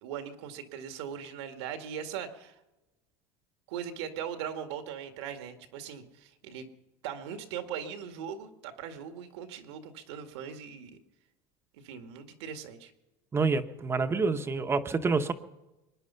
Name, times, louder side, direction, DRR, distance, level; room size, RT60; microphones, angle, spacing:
voice 1, 0.0-2.6 3.7-6.7 7.0-11.0 11.8-12.9, right 8 dB, 85° right, 7 dB, 2.0 m, -40 dB
voice 2, 13.3-15.3, right 4 dB, 20° right, 9 dB, 0.9 m, -27 dB
24.0 x 10.5 x 5.7 m, 1.0 s
supercardioid pair, 140°, 14 cm